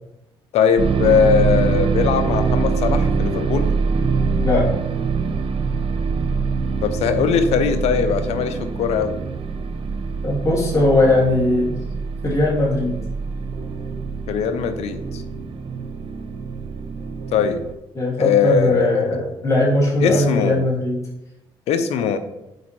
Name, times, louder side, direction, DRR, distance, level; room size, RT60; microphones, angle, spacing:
voice 1, 0.5-3.7 6.8-9.2 14.3-15.2 17.3-17.6 18.2-19.2 20.0-20.7 21.7-22.2, left 6 dB, 75° left, 9 dB, 0.7 m, -20 dB
sound 1, 0.8-17.7, right 5 dB, 55° right, 0.7 m, -24 dB
voice 2, 4.4-4.7 10.2-11.8 12.2-13.0 17.9-21.0, left 2 dB, 30° left, -5 dB, 2.4 m, -19 dB
7.8 x 4.4 x 3.2 m, 0.94 s
supercardioid pair, 75°, 11 cm